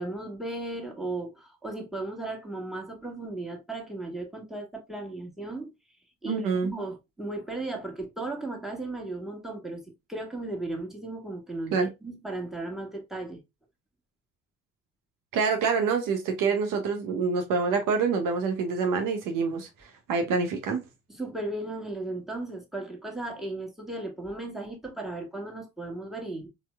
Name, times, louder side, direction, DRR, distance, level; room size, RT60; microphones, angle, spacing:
voice 1, 0.0-5.7 6.2-13.4 21.1-26.5, right 2 dB, ahead, 1.4 m, -36 dB
voice 2, 6.3-6.7 11.7-11.9 15.3-19.7 20.1-20.8, right 5 dB, 60° right, 0.8 m, -26 dB
4.2 x 2.2 x 3.3 m
figure-of-eight pair, 45°, 37 cm